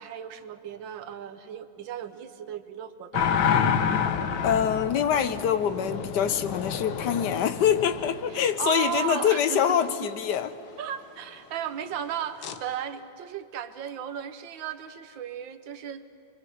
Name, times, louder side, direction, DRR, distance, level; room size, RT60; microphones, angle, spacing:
voice 1, 0.0-3.5 8.3-10.1 10.8-16.0, right 9 dB, 85° right, 1.7 m, -35 dB
sound 1, 3.1-9.0 12.4-12.6, left 7 dB, 85° left, 1.6 m, -28 dB
voice 2, 4.4-10.5, left 9 dB, 70° left, 1.3 m, -25 dB
25.0 x 23.0 x 5.7 m
omnidirectional pair, 2.0 m